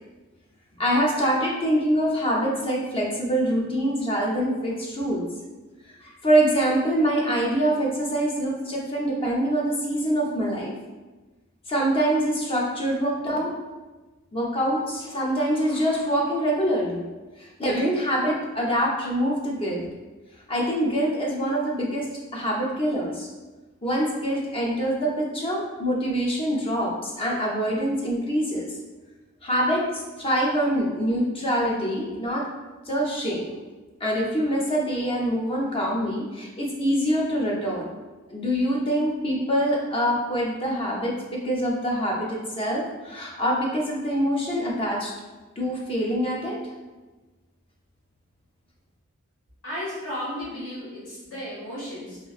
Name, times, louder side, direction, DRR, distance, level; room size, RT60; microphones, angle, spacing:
voice 1, 0.7-5.3 6.0-10.7 11.7-13.5 14.3-17.0 17.4-19.8 20.5-23.3 23.8-28.8 29.4-32.5 32.9-33.6 34.0-37.9 38.3-45.1 45.6-46.6, equal, 25° left, -2 dB, 0.5 m, -25 dB
voice 2, 49.6-52.2, equal, 65° left, -8 dB, 1.3 m, -34 dB
2.9 x 2.4 x 2.3 m, 1.2 s
head